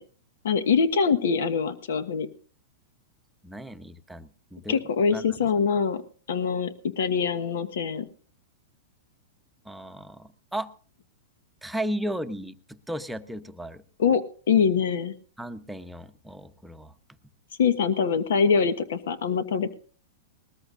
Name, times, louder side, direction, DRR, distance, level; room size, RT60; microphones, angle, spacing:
voice 1, 0.4-2.3 4.7-6.0 6.3-8.1 14.0-15.1 17.6-19.7, left 6 dB, 80° left, 12 dB, 1.3 m, -24 dB
voice 2, 3.4-4.8 5.1-5.4 9.6-10.7 11.6-13.8 15.4-16.9, right 1 dB, 5° right, 8 dB, 0.8 m, -35 dB
20.5 x 13.5 x 2.6 m, 0.41 s
hypercardioid pair, 145°, 0 cm